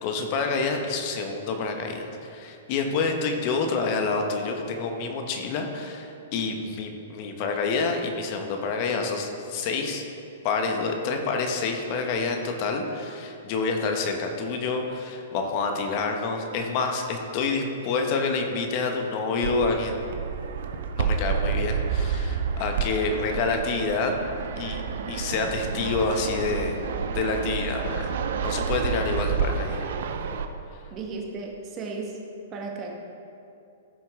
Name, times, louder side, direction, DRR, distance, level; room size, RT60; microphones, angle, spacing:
voice 1, 0.0-10.0 10.4-20.1 21.0-24.1 24.6-26.8 27.1-28.1 28.4-29.9, left 4 dB, 45° left, 3 dB, 1.3 m, -28 dB
Fixed-wing aircraft airplane, 19.4-30.4, right 6 dB, 65° right, 0.6 m, -29 dB
voice 2, 30.9-32.1 32.5-32.9, right 4 dB, 30° right, 1 dB, 1.6 m, -34 dB
14.0 x 5.9 x 3.8 m, 2.6 s
hypercardioid pair, 120°, 0 cm